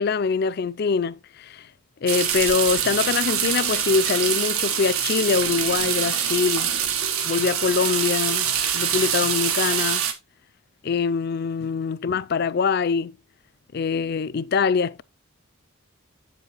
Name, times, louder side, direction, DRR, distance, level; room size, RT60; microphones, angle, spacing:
voice 1, 0.0-1.7 2.0-6.7 7.2-10.0 10.8-13.2 13.7-15.0, left 5 dB, 50° left, 0.4 m, -24 dB
sound 1, 2.1-10.1, right 8 dB, 90° right, 1.3 m, -24 dB
7.6 x 7.2 x 3.0 m
head